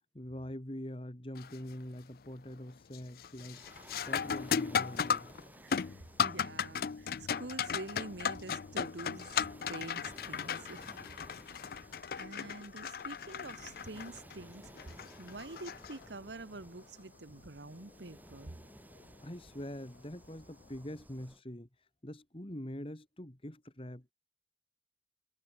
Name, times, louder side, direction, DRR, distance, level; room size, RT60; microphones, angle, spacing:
voice 1, 0.1-3.6 4.1-5.3 19.2-21.7 22.0-24.1, left 1 dB, 30° left, 2.1 m, -44 dB
sound 1, 1.4-1.7 2.2-2.6 2.9-16.4 19.0-19.1 19.9-20.1, left 7 dB, 55° left, 0.4 m, -36 dB
Waves surf, 3.3-21.4, right 1 dB, 10° right, 1.6 m, -56 dB
voice 2, 5.6-10.9 11.8-11.9 12.2-18.6, right 2 dB, 80° right, 1.4 m, -47 dB
head